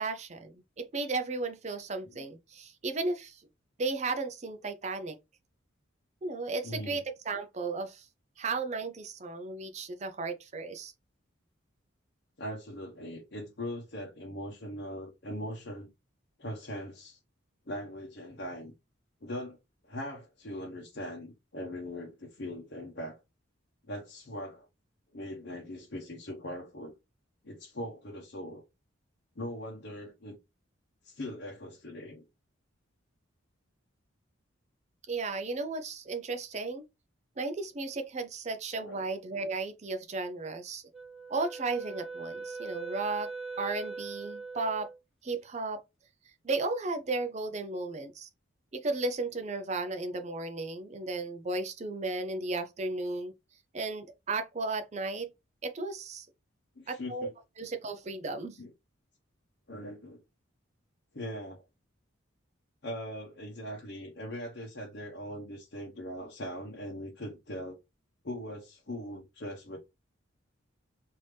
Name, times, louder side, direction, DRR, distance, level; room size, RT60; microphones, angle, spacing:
voice 1, 0.0-3.4 3.8-5.2 6.2-8.1 8.4-10.9 35.1-36.8 37.4-40.8 41.3-43.3 43.6-44.9 45.2-45.8 46.4-48.3 48.7-53.3 53.7-55.3 55.6-56.3 56.9-57.3 57.6-58.6, right 3 dB, 35° right, 0.4 m, -34 dB
voice 2, 6.6-7.0 12.4-15.9 16.4-17.2 17.7-18.7 19.2-19.6 19.8-23.2 23.9-24.7 25.1-26.9 27.4-28.6 29.4-30.4 31.0-32.2 38.8-39.1 56.8-57.3 58.6-58.7 59.7-60.2 61.1-61.6 62.8-67.8 68.2-69.8, equal, 55° left, 0.8 m, -40 dB
Wind instrument woodwind instrument, 40.9-45.0, right 4 dB, ahead, 1.4 m, -41 dB
3.3 x 2.7 x 3.1 m
head